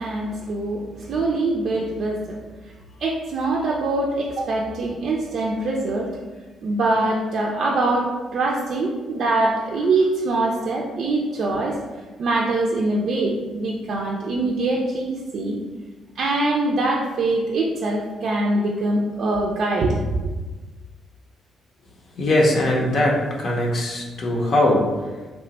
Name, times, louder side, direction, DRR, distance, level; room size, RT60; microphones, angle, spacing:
voice 1, 0.0-2.4 3.0-6.1 6.6-11.8 12.2-15.6 16.2-20.2, right 2 dB, 65° right, -2 dB, 0.4 m, -23 dB
voice 2, 22.1-25.3, left 1 dB, 60° left, -2 dB, 0.6 m, -21 dB
3.0 x 2.1 x 4.0 m, 1.3 s
cardioid pair, 90°, 0 cm